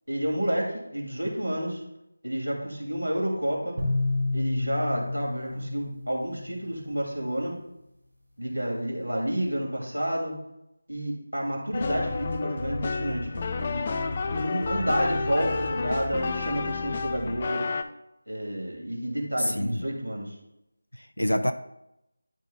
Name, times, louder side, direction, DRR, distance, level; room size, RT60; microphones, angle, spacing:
voice 1, 0.1-1.8 2.2-3.8 4.3-7.6 8.4-10.4 10.9-13.9 14.3-17.6 18.3-20.3, equal, 90° right, -1 dB, 2.8 m, -30 dB
sound 1, 3.8-7.0, left 2 dB, 45° right, 2.3 m, -30 dB
sound 2, 11.7-17.8, left 4 dB, 30° left, 0.4 m, -30 dB
voice 2, 19.4-19.8 20.9-21.5, equal, 85° left, 9 dB, 0.5 m, -27 dB
11.5 x 4.7 x 2.4 m, 0.85 s
figure-of-eight pair, 165°, 0 cm